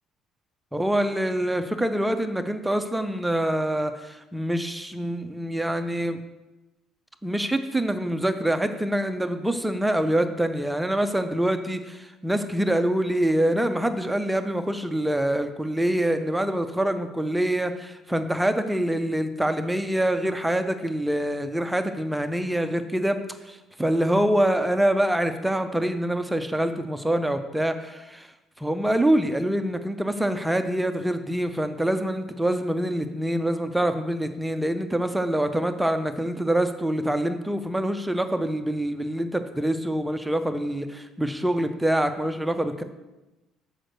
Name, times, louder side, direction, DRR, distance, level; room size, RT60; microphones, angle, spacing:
voice 1, 0.7-6.2 7.2-28.3 28.6-42.8, right 1 dB, 5° right, 8 dB, 0.5 m, -25 dB
6.3 x 5.1 x 6.5 m, 1.0 s
cardioid pair, 115°, 0 cm